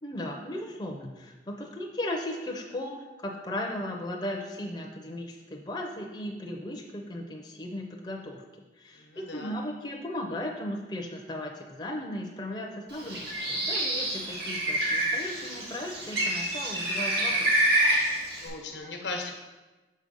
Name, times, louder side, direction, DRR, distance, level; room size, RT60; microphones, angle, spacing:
voice 1, 0.0-8.4 8.8-17.6, left 1 dB, 25° left, 0 dB, 0.6 m, -36 dB
voice 2, 9.0-9.5 18.4-19.3, left 3 dB, 85° left, 2 dB, 1.0 m, -37 dB
Bird, 12.9-18.5, right 1 dB, 60° right, 1.7 m, -27 dB
6.4 x 4.2 x 5.3 m, 1.2 s
head